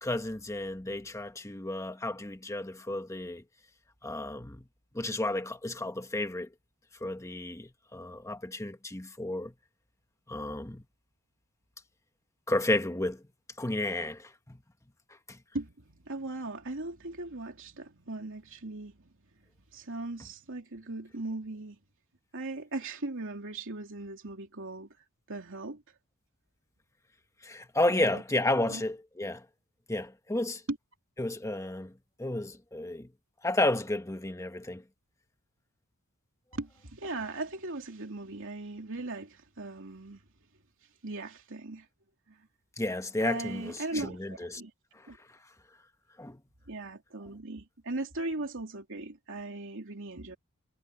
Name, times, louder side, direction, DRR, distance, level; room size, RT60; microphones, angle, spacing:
voice 1, 0.0-3.4 4.0-4.6 4.9-6.5 7.0-9.5 10.3-10.8 12.5-13.2 13.6-14.6 15.3-15.4 27.4-29.4 29.9-30.6 31.2-33.1 33.4-34.8 42.8-44.6 44.9-45.4 46.2-46.4, left 2 dB, 15° left, 1.4 m, -32 dB
voice 2, 15.5-19.1 19.7-21.8 22.3-24.9 25.3-25.8 28.0-28.2 28.6-28.8 30.7-30.8 36.5-40.2 41.0-41.9 42.3-42.4 43.2-44.7 45.1-45.2 46.7-50.4, right 2 dB, 60° right, 3.0 m, -38 dB
head